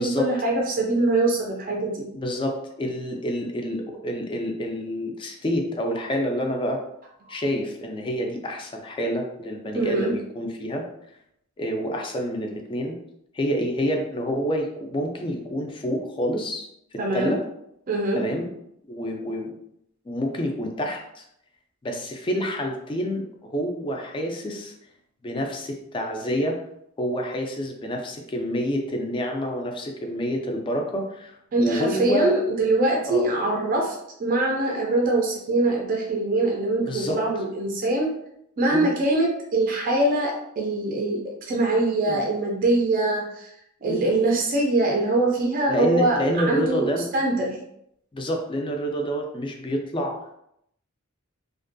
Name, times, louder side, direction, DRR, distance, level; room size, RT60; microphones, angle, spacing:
voice 1, 0.0-2.1 7.3-7.4 9.7-10.1 17.0-17.3 17.9-18.2 31.5-33.9 34.2-38.1 38.6-41.2 41.5-43.5 43.8-46.2 46.5-47.6, right 2 dB, 40° right, -1 dB, 0.4 m, -23 dB
voice 2, 2.1-6.8 7.3-10.8 11.6-12.9 13.3-16.7 16.9-17.4 18.1-18.5 18.9-19.5 20.1-21.2 21.8-24.7 25.2-26.6 27.0-32.4 33.1-33.3 36.9-37.2 38.7-38.9 42.1-42.2 43.9-44.0 45.7-47.1 48.1-50.2, equal, 25° left, 2 dB, 0.3 m, -28 dB
2.5 x 2.2 x 2.5 m, 0.76 s
head